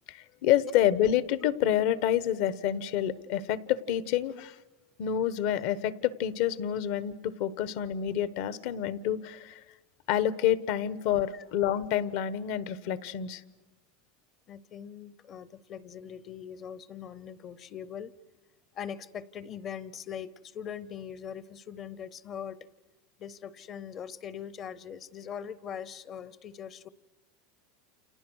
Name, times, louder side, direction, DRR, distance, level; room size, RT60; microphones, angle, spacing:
voice 1, 0.1-4.5 5.0-9.6 10.1-13.4, left 11 dB, 60° left, 16 dB, 1.1 m, -28 dB
voice 2, 14.5-18.1 18.7-22.7 23.2-26.9, left 8 dB, 30° left, 19 dB, 0.8 m, -41 dB
29.5 x 28.5 x 6.4 m, 1.2 s
supercardioid pair, 150°, 0 cm